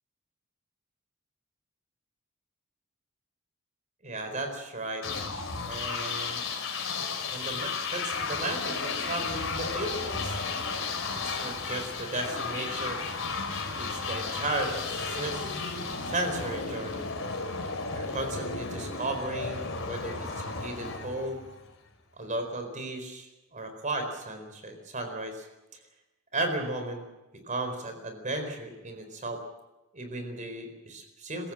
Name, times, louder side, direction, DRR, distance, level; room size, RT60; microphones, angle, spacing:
voice 1, 4.0-5.1 5.6-6.4 7.3-10.4 11.2-13.1 13.8-15.5 16.0-17.1 17.9-21.4 22.2-25.4 26.3-27.0 27.4-29.4 29.9-31.5, right 2 dB, 40° right, 6 dB, 4.4 m, -35 dB
sound 1, 5.0-21.7, left 4 dB, 65° left, 4.1 m, -33 dB
26.0 x 16.0 x 7.6 m, 1.0 s
head